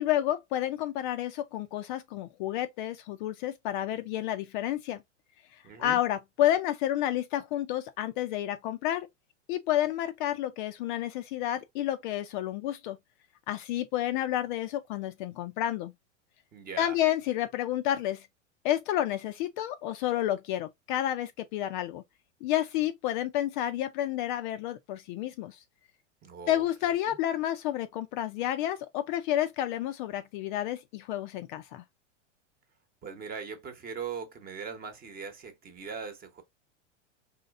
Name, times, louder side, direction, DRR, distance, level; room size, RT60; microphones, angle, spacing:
voice 1, 0.0-5.0 5.5-9.1 9.5-13.0 13.5-15.9 16.8-18.3 18.6-22.0 22.4-25.6 26.5-31.8, left 12 dB, 45° left, 0.4 m, -30 dB
voice 2, 5.6-6.0 16.5-17.0 26.2-26.7 27.0-27.2 33.0-36.4, right 5 dB, 25° right, 1.0 m, -40 dB
4.2 x 3.1 x 2.4 m
hypercardioid pair, 115°, 37 cm